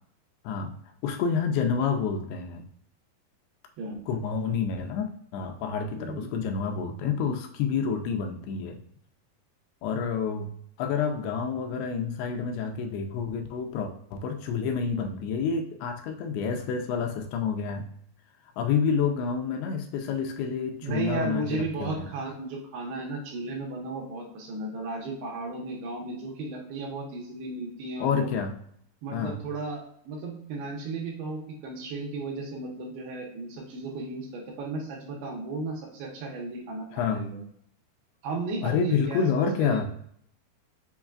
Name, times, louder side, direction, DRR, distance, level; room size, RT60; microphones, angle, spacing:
voice 1, 1.0-2.7 4.1-8.8 9.8-10.5 10.8-17.9 18.6-22.0 28.0-28.6 29.1-29.4 36.9-37.3 38.6-39.9, left 6 dB, 85° left, 4 dB, 2.6 m, -28 dB
voice 2, 6.0-6.3 20.8-28.3 29.0-29.8 30.1-37.4 38.2-39.9, right 3 dB, 75° right, -1 dB, 2.9 m, -35 dB
7.1 x 3.1 x 2.4 m, 0.67 s
omnidirectional pair, 4.5 m